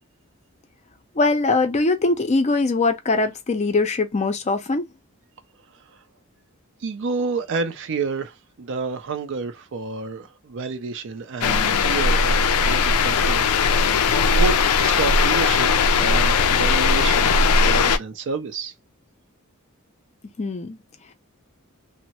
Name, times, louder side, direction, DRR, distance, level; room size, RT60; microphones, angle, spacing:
voice 1, 1.2-4.9 20.4-20.8, left 3 dB, 30° left, 0.5 m, -21 dB
voice 2, 6.8-13.5 13.9-18.7, right 4 dB, 60° right, 0.4 m, -30 dB
sound 1, 11.4-18.0, left 4 dB, 90° left, 0.4 m, -18 dB
3.1 x 2.1 x 2.7 m
head